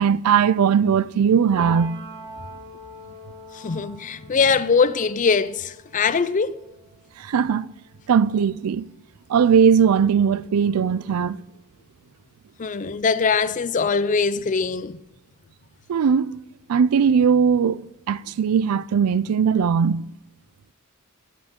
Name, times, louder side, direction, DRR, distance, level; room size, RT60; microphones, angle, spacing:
voice 1, 0.0-2.0 7.2-7.7 8.1-8.9 9.3-11.4 15.9-16.4 16.7-17.8 18.1-20.1, right 7 dB, 85° right, 0.4 m, -19 dB
Piano, 1.6-9.2 9.5-11.1, right 1 dB, 55° right, 2.2 m, -42 dB
voice 2, 3.5-6.6 12.6-15.0, left 5 dB, 35° left, 0.4 m, -22 dB
11.5 x 10.5 x 3.7 m
head